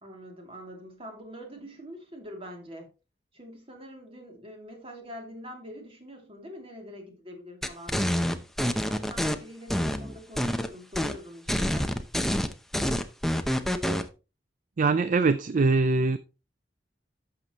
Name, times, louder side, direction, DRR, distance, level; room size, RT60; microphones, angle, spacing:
voice 1, 0.0-2.9 3.3-8.2 8.6-12.0, equal, 35° right, 2.8 m, -44 dB
sound 1, 7.6-9.3 9.7-10.7 10.9-11.2 11.5-14.0, equal, ahead, 0.7 m, -27 dB
voice 2, 14.8-16.2, right 3 dB, 50° right, 0.4 m, -22 dB
11.5 x 6.9 x 3.0 m
head